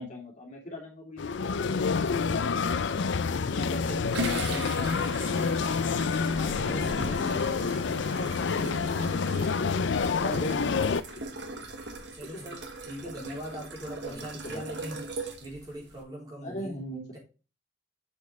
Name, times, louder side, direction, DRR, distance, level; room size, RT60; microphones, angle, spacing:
voice 1, 0.0-2.4 8.0-8.3 9.3-10.8 11.4-11.5 12.2-12.4 14.0-14.7 16.4-17.2, equal, 35° left, -2 dB, 2.7 m, -40 dB
sound 1, 1.2-11.0, left 5 dB, 65° left, 0.5 m, -28 dB
voice 2, 3.1-5.5 6.0-7.9 9.2-9.8 12.1-15.0 15.4-16.7 17.1-17.2, equal, 20° right, -2 dB, 3.5 m, -42 dB
sound 2, 3.7-16.0, right 2 dB, 60° right, 1.4 m, -40 dB
7.5 x 6.3 x 3.4 m, 0.32 s
head